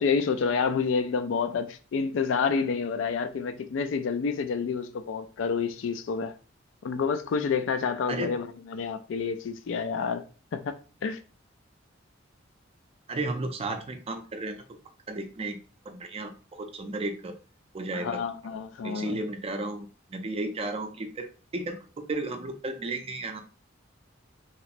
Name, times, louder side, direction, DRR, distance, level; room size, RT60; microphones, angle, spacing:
voice 1, 0.0-6.3 6.8-10.2 10.5-10.7 11.0-11.2 17.9-19.2, left 5 dB, 70° left, 0.3 m, -28 dB
voice 2, 13.1-14.8 15.1-15.6 15.9-17.4 17.7-18.2 18.8-23.4, right 2 dB, 30° right, 0.5 m, -34 dB
3.0 x 2.9 x 2.5 m
head